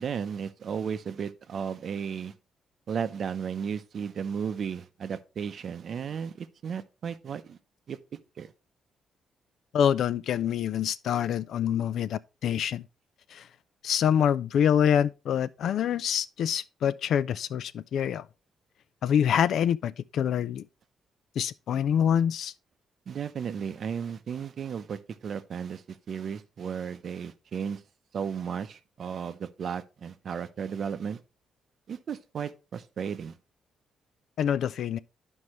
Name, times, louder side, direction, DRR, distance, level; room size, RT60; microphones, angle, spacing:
voice 1, 0.0-2.3 2.9-7.6 7.9-8.0 8.4-8.5 23.1-27.8 28.1-31.2 31.9-33.4, right 7 dB, 45° right, 0.6 m, -34 dB
voice 2, 9.7-12.8 13.3-13.4 13.8-18.2 19.0-20.6 21.4-22.5 34.4-35.0, left 9 dB, 65° left, 0.4 m, -26 dB
11.5 x 5.4 x 3.0 m
cardioid pair, 155°, 0 cm